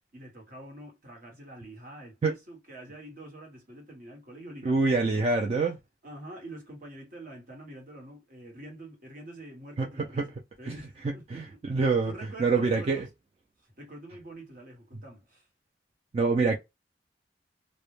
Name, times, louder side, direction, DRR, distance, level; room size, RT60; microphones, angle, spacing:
voice 1, 0.1-5.5 6.0-11.6 12.1-13.1 13.8-15.5, right 1 dB, 50° right, 1.0 m, -46 dB
voice 2, 4.6-5.7 9.8-9.9 10.2-10.3 10.7-10.8 11.0-12.1 12.4-13.1 16.1-16.6, right 4 dB, 35° right, 0.3 m, -25 dB
2.1 x 2.1 x 3.0 m
head